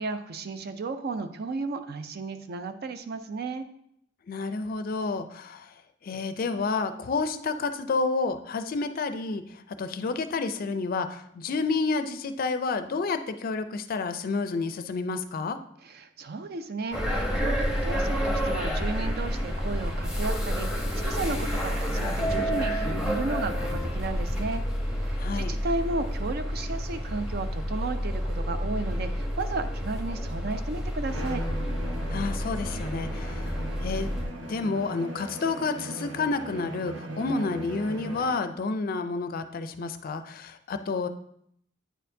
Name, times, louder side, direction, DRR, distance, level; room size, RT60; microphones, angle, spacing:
voice 1, 0.0-3.7 15.8-24.6 24.9-31.4, right 3 dB, 55° right, 9 dB, 0.5 m, -34 dB
voice 2, 4.3-5.7 6.0-9.4 9.8-15.6 25.2-25.6 32.1-33.5 33.8-34.1 34.5-41.1, left 4 dB, 50° left, 10 dB, 0.4 m, -30 dB
sound 1, 16.9-34.2, equal, 5° right, 0.9 m, -29 dB
Bowed string instrument, 31.1-38.5, right 1 dB, 90° right, 0.8 m, -39 dB
9.0 x 4.3 x 2.7 m, 0.71 s
head